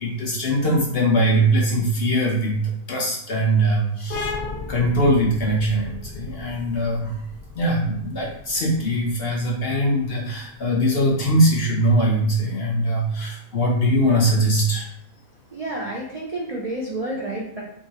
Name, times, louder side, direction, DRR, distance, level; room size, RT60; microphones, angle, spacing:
voice 1, 0.0-4.3 4.7-7.2 7.6-14.9, right 1 dB, 60° left, -1 dB, 0.7 m, -21 dB
sound 1, 4.1-11.4, left 3 dB, 80° left, 1.1 m, -36 dB
voice 2, 15.5-17.6, right 1 dB, 70° right, -3 dB, 0.3 m, -29 dB
3.8 x 3.0 x 2.8 m, 0.70 s
omnidirectional pair, 1.5 m